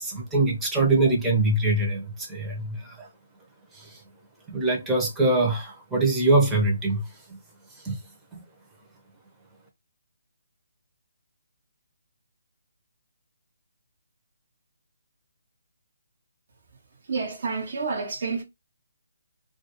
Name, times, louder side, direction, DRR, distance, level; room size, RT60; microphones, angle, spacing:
voice 1, 0.0-3.1 3.7-4.0 4.5-7.4 7.7-8.0 8.3-8.4, right 2 dB, 10° right, 0.6 m, -24 dB
voice 2, 16.9-18.4, right 4 dB, 55° right, 0.6 m, -29 dB
2.3 x 2.2 x 2.9 m
figure-of-eight pair, 145°, 0 cm